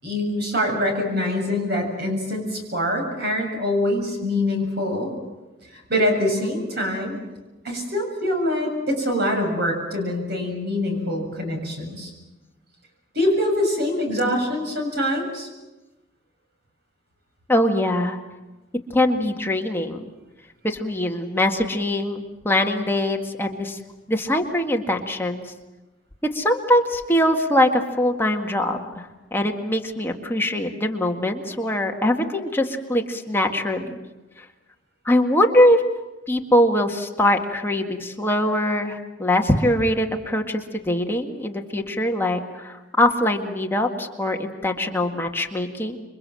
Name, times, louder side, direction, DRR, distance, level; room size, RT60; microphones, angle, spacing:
voice 1, 0.0-5.1 5.7-7.2 7.6-12.1 13.1-15.5, left 1 dB, 60° right, 3 dB, 7.2 m, -24 dB
voice 2, 17.5-18.2 18.9-20.0 20.6-23.8 24.1-25.4 26.2-34.0 35.1-35.8 36.3-46.0, left 1 dB, 10° left, 2 dB, 1.8 m, -22 dB
27.5 x 23.5 x 7.7 m, 1.1 s
head